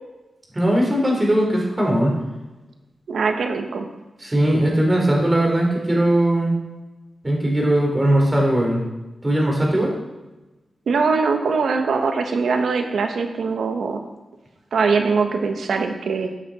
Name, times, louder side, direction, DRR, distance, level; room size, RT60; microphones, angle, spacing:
voice 1, 0.5-2.1 4.2-6.6 7.2-8.8 9.2-9.9, right 1 dB, 20° right, -2 dB, 3.8 m, -19 dB
voice 2, 3.1-3.9 10.9-14.0 14.7-16.3, right 4 dB, 90° right, 5 dB, 1.3 m, -22 dB
13.5 x 8.5 x 4.3 m, 1.1 s
cardioid pair, 75°, 0 cm